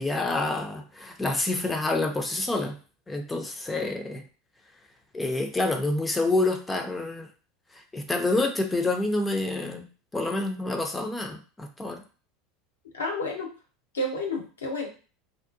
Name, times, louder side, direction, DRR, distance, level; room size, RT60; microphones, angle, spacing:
voice 1, 0.0-2.8 3.1-4.2 5.1-7.3 7.7-9.9 10.1-12.0, left 2 dB, 15° left, 4 dB, 0.5 m, -28 dB
voice 2, 12.9-13.5 13.9-14.9, left 1 dB, 85° left, 1 dB, 0.7 m, -30 dB
2.6 x 2.1 x 2.5 m, 0.36 s
hypercardioid pair, 80°, 0 cm